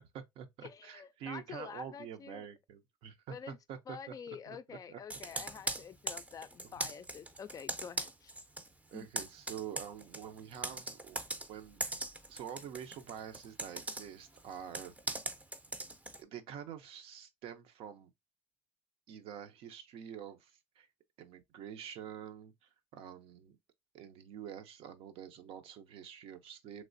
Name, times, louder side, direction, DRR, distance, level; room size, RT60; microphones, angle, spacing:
voice 1, 0.0-4.1 4.5-5.0 6.6-6.7 8.9-11.2 11.5-11.8 12.3-14.9 16.2-18.1 19.1-20.9 21.2-23.6 23.9-26.8, right 9 dB, 70° right, 0.6 m, -47 dB
voice 2, 0.6-2.5 3.3-3.6 3.9-8.3 8.9-9.1, left 7 dB, 35° left, 0.3 m, -48 dB
Computer keyboard, 5.1-8.7 9.0-16.2, right 2 dB, 15° right, 0.5 m, -40 dB
3.2 x 3.0 x 2.5 m
supercardioid pair, 90°, 10 cm